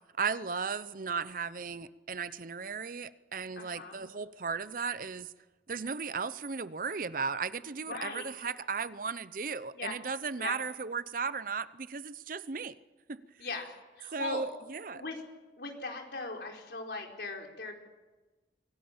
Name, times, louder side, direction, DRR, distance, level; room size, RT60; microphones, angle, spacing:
voice 1, 0.2-5.3 5.7-12.7 13.1-13.2 14.1-15.0, right 5 dB, 50° right, 15 dB, 0.7 m, -36 dB
voice 2, 3.6-4.0 7.9-8.3 9.7-10.0 10.4-10.6 13.4-13.7 14.0-14.4 14.9-15.2 15.6-17.8, left 3 dB, 65° left, 2 dB, 4.6 m, -39 dB
25.5 x 18.0 x 8.8 m, 1.2 s
head